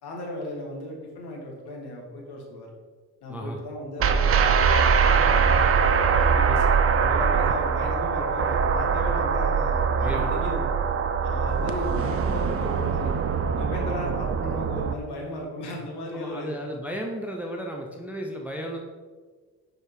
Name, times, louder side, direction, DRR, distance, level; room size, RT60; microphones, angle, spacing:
voice 1, 0.0-2.7 3.2-10.7 11.2-13.1 13.6-16.8, left 1 dB, 55° left, -1 dB, 1.9 m, -36 dB
sound 1, 4.0-14.9, right 6 dB, 30° right, 0.5 m, -22 dB
voice 2, 16.1-18.8, equal, 5° right, 1 dB, 0.8 m, -34 dB
5.5 x 5.4 x 4.7 m, 1.5 s
figure-of-eight pair, 50°, 48 cm